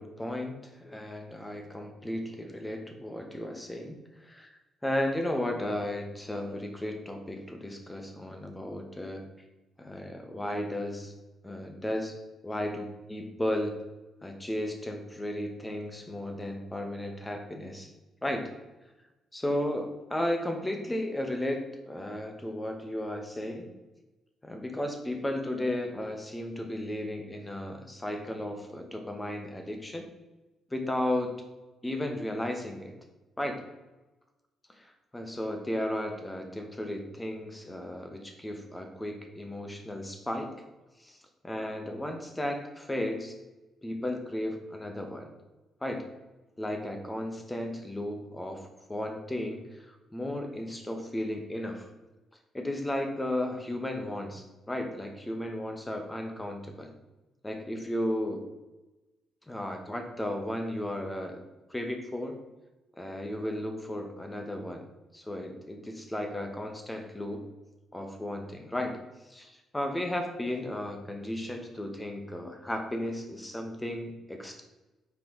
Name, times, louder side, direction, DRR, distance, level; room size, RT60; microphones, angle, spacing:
voice 1, 0.0-4.0 4.3-4.4 4.8-9.2 9.8-11.1 11.4-13.8 14.2-17.9 18.2-18.5 19.3-23.7 24.4-30.0 30.7-31.3 31.8-32.9 33.4-33.6 34.8-40.5 41.0-41.2 41.4-43.3 43.8-45.3 45.8-46.0 46.6-51.9 52.5-56.9 57.4-58.4 59.5-61.4 61.7-62.4 62.9-64.9 65.1-67.5 67.9-69.0 69.3-74.6, left 1 dB, 15° left, 4 dB, 1.2 m, -34 dB
6.0 x 4.5 x 3.8 m, 1.1 s
cardioid pair, 90°, 0 cm